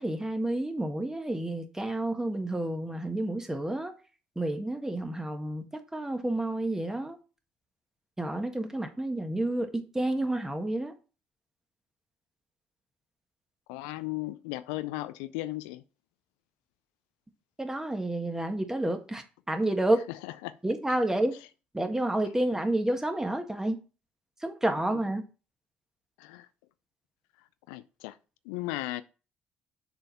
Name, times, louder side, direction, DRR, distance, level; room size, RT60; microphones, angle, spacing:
voice 1, 0.0-3.9 4.3-5.6 5.9-7.2 8.2-10.9 17.6-20.0 20.6-21.4 21.7-23.8 24.4-25.2, right 1 dB, 10° right, 1.7 m, -30 dB
voice 2, 13.7-15.8 20.1-20.6 26.2-26.5 27.7-28.2 28.4-29.0, left 17 dB, 75° left, 0.3 m, -36 dB
6.9 x 4.1 x 5.5 m
hypercardioid pair, 50°, 5 cm